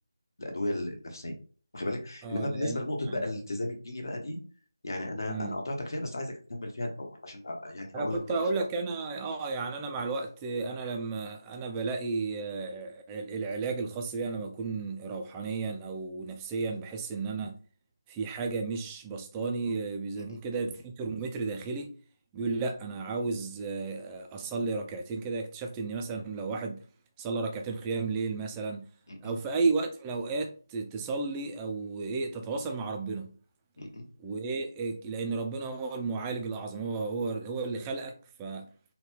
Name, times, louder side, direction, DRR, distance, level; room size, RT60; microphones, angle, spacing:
voice 1, 0.4-1.3 1.7-4.4 4.8-8.4 20.2-20.4 29.1-29.3 33.8-34.0, left 1 dB, 60° left, 1.1 m, -34 dB
voice 2, 2.2-2.8 3.1-3.2 5.3-5.6 7.9-17.6 18.1-21.9 22.3-26.8 27.2-28.9 29.2-33.3 34.2-38.7, right 4 dB, 10° right, 0.3 m, -33 dB
3.8 x 2.2 x 3.1 m
figure-of-eight pair, 165°, 2 cm